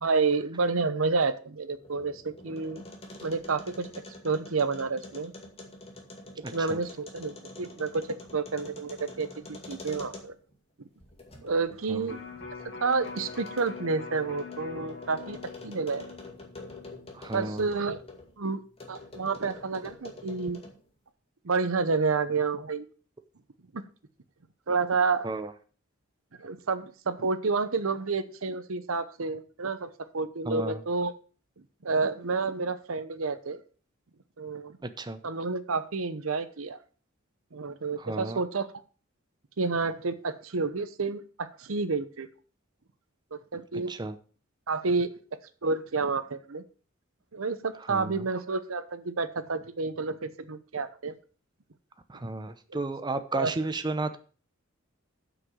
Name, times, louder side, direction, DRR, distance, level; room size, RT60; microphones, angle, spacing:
voice 1, 0.0-2.8 3.2-3.9 4.2-5.3 6.5-8.0 8.3-10.3 11.4-12.2 12.8-15.4 15.6-16.1 17.3-18.0 18.4-18.6 18.9-20.6 21.4-22.9 23.7-23.8 24.7-25.3 26.4-29.9 30.1-31.1 31.8-33.6 34.4-34.8 35.2-36.8 37.5-38.7 39.6-42.3 43.3-43.9 44.7-45.1 45.6-46.6 47.3-51.1 53.3-53.5, right 4 dB, 75° right, 13 dB, 0.8 m, -29 dB
sound 1, 1.6-10.5 11.0-18.3 18.8-20.9, left 2 dB, 30° left, 2.1 m, -47 dB
voice 2, 6.4-6.8 11.9-12.0 17.1-17.7 25.2-25.5 30.5-30.8 35.0-35.2 38.0-38.4 43.9-44.1 47.9-48.1 52.1-54.2, right 2 dB, 20° right, 9 dB, 0.6 m, -33 dB
Electric guitar, 12.1-18.3 18.7-18.8, left 5 dB, 60° left, 2.4 m, -44 dB
8.1 x 6.2 x 6.2 m, 0.39 s
head